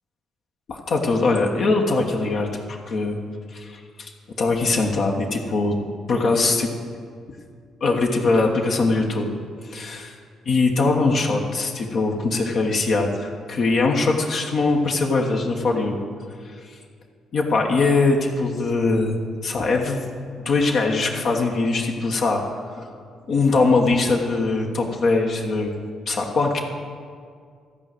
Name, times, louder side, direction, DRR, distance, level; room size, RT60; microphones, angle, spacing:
voice 1, 0.7-3.2 3.5-4.1 4.4-5.8 6.1-6.7 7.8-9.3 9.6-10.2 10.4-16.0 16.4-16.5 17.3-20.1 20.4-22.9 23.3-25.7 26.1-26.6, left 3 dB, 60° left, 0 dB, 1.3 m, -21 dB
13.5 x 5.0 x 7.8 m, 2.1 s
hypercardioid pair, 50°, 0 cm